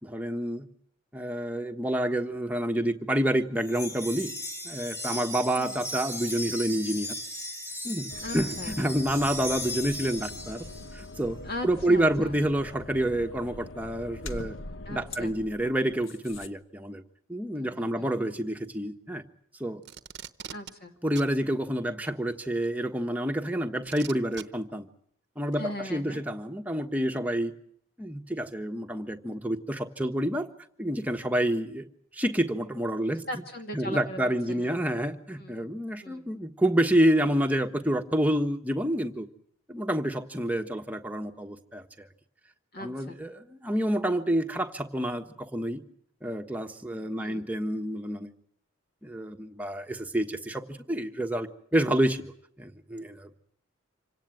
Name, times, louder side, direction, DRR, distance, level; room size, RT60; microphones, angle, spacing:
voice 1, 0.0-0.7 1.1-4.3 4.6-7.1 7.8-10.6 10.9-14.6 14.9-17.0 17.3-19.2 19.6-19.8 21.0-24.9 25.4-27.5 28.0-30.5 30.8-31.9 32.1-33.2 33.7-39.3 39.7-42.1 42.8-45.8 46.2-48.3 49.0-52.3 52.6-53.3, right 1 dB, 5° right, 4 dB, 1.3 m, -28 dB
Wind chime, 3.6-11.1, left 1 dB, 15° left, 4.4 m, -37 dB
sound 1, 8.1-16.5, left 2 dB, 70° left, 1.1 m, -43 dB
voice 2, 8.2-8.8 11.4-12.4 14.9-15.3 17.5-18.1 20.5-20.9 25.5-26.2 33.3-34.2 34.5-34.8 35.4-35.7 36.0-36.2 42.7-43.2 47.2-47.5, left 1 dB, 45° left, 4 dB, 2.2 m, -39 dB
Packing tape duct tape, 19.8-20.7 21.2-21.3 22.6-22.7 23.9-24.4 25.5-25.6, right 9 dB, 55° right, 0.9 m, -41 dB
26.5 x 17.5 x 9.1 m, 0.68 s
head